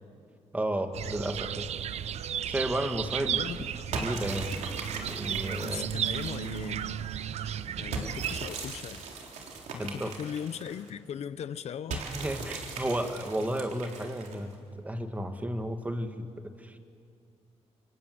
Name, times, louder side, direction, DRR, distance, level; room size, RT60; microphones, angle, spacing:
voice 1, 0.5-1.7 2.5-3.4 3.9-4.6 5.0-5.9 8.0-8.1 9.8-10.1 11.9-16.8, right 1 dB, 15° right, 6 dB, 2.0 m, -33 dB
sound 1, 0.9-8.5, right 10 dB, 65° right, 0.7 m, -34 dB
voice 2, 3.2-4.2 5.6-7.0 7.8-9.0 9.7-12.0, left 8 dB, 65° left, 13 dB, 0.8 m, -39 dB
sound 2, 3.9-6.8 7.9-10.9 11.9-14.5, right 4 dB, 90° right, 3.7 m, -39 dB
28.5 x 25.0 x 7.9 m, 2.3 s
cardioid pair, 120°, 12 cm